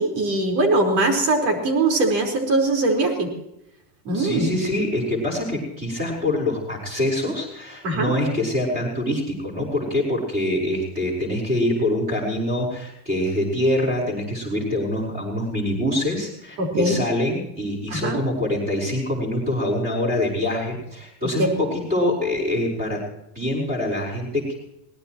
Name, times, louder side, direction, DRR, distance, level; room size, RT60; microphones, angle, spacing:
voice 1, 0.0-3.3 4.0-4.5 7.8-8.1 16.6-17.0 17.9-18.2 21.4-21.5, right 2 dB, 85° right, 3 dB, 4.7 m, -21 dB
voice 2, 4.1-23.0 23.4-24.5, left 1 dB, 20° right, -2 dB, 5.2 m, -25 dB
23.0 x 18.5 x 3.1 m, 0.83 s
supercardioid pair, 145°, 46 cm